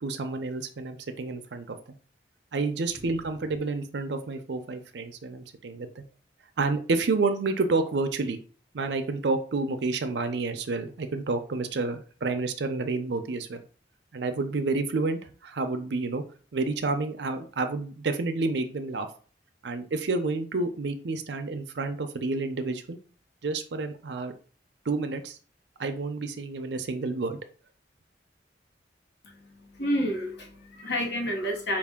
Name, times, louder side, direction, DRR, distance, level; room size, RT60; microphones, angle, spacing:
voice 1, 0.0-1.8 2.5-6.0 6.6-8.4 8.7-13.6 14.1-16.2 16.5-19.1 19.6-23.0 23.4-24.3 24.9-25.4 25.8-27.4, right 3 dB, 75° right, 0.5 m, -29 dB
voice 2, 29.2-31.8, equal, 75° left, 1.1 m, -30 dB
4.7 x 2.4 x 3.5 m
head